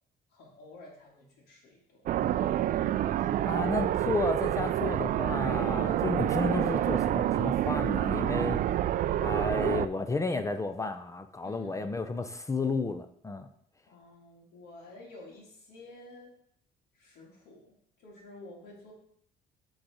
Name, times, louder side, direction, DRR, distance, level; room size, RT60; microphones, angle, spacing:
voice 1, 0.3-2.1 11.4-11.9 13.9-16.3 16.9-18.9, left 2 dB, 75° left, -3 dB, 2.3 m, -51 dB
sound 1, 2.1-9.9, right 12 dB, 55° right, 0.4 m, -28 dB
voice 2, 3.2-8.6 9.2-13.5, left 3 dB, 20° left, 9 dB, 0.5 m, -32 dB
8.7 x 4.0 x 4.9 m, 0.66 s
cardioid pair, 110°, 17 cm